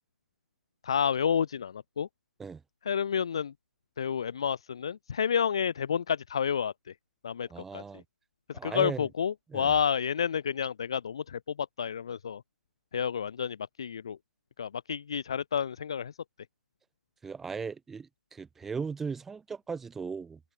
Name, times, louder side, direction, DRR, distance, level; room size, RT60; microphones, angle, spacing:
voice 1, 0.8-2.1 2.8-3.5 4.0-7.0 7.2-8.0 8.5-12.4 12.9-14.2 14.6-16.2, left 7 dB, 20° left, 0.6 m, -30 dB
voice 2, 7.5-8.0 8.5-9.1 9.5-9.7 17.2-20.4, right 5 dB, 5° right, 2.3 m, -37 dB
figure-of-eight pair, 165°, 9 cm